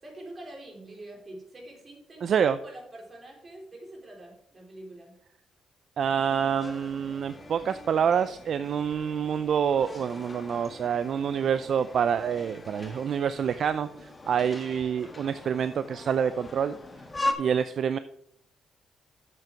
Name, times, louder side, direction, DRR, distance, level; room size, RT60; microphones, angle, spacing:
voice 1, 0.0-5.1, right 1 dB, 35° right, 0 dB, 3.7 m, -45 dB
voice 2, 2.2-2.6 6.0-16.8 17.4-18.0, right 7 dB, 60° right, 13 dB, 0.4 m, -27 dB
sound 1, 6.0-17.3, left 2 dB, 20° left, 1.4 m, -40 dB
7.7 x 7.6 x 4.6 m, 0.74 s
cardioid pair, 90°, 0 cm